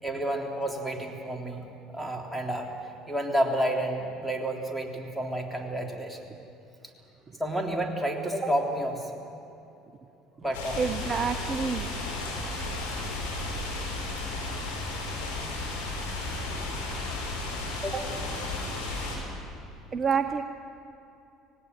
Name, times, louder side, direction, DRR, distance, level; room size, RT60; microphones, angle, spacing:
voice 1, 0.0-1.7 1.9-2.7 3.1-6.3 7.4-9.1 10.4-10.9 16.9-17.0 17.8-18.1, right 1 dB, ahead, 0 dB, 3.4 m, -30 dB
sound 1, 10.5-19.2, left 2 dB, 85° left, 4.9 m, -33 dB
voice 2, 10.8-11.9 16.2-16.6 19.9-20.4, right 6 dB, 40° right, 8 dB, 0.9 m, -28 dB
18.5 x 17.5 x 9.6 m, 2.8 s
hypercardioid pair, 70°, 0 cm